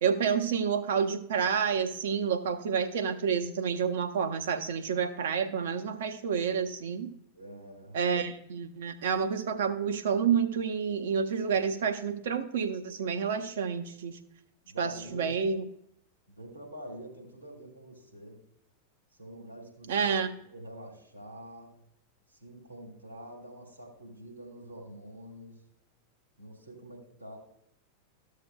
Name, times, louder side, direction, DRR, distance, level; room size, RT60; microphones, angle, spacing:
voice 1, 0.0-7.1 7.9-14.2 14.8-15.6 19.9-20.3, right 6 dB, 60° right, 8 dB, 0.8 m, -29 dB
voice 2, 7.3-8.0 14.6-15.4 16.3-18.4 19.2-20.1 20.4-21.8 22.3-25.6 26.4-27.4, equal, 85° right, 0 dB, 2.4 m, -46 dB
14.0 x 6.6 x 2.3 m, 0.73 s
figure-of-eight pair, 90°, 0 cm